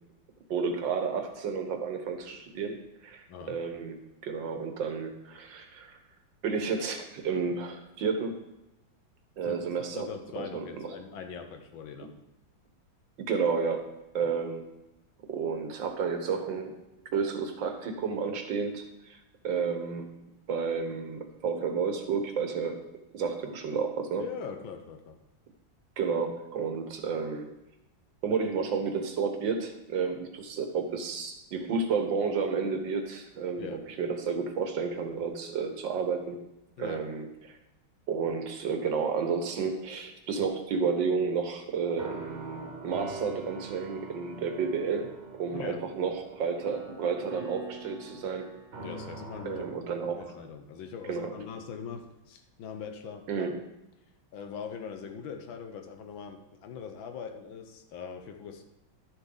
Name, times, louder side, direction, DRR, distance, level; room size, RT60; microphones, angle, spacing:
voice 1, 0.5-2.8 3.0-4.0 4.2-6.0 6.4-8.3 9.4-10.1 10.4-10.9 13.2-13.9 14.1-14.7 15.3-16.7 17.1-19.2 19.4-20.1 20.5-22.8 23.1-24.2 26.0-27.5 28.2-36.4 36.8-37.6 38.1-45.1 45.4-48.5 49.5-50.3 51.1-51.3 53.3-53.6, right 5 dB, 70° right, 6 dB, 1.7 m, -31 dB
voice 2, 9.4-12.1 14.2-14.3 24.2-25.2 33.6-33.8 36.8-37.0 45.5-45.8 48.8-49.6 50.1-53.5 54.3-58.6, left 6 dB, 75° left, 6 dB, 1.7 m, -41 dB
sound 1, 41.9-50.4, right 3 dB, 35° right, 1.7 m, -44 dB
11.0 x 7.0 x 3.8 m, 0.94 s
omnidirectional pair, 2.2 m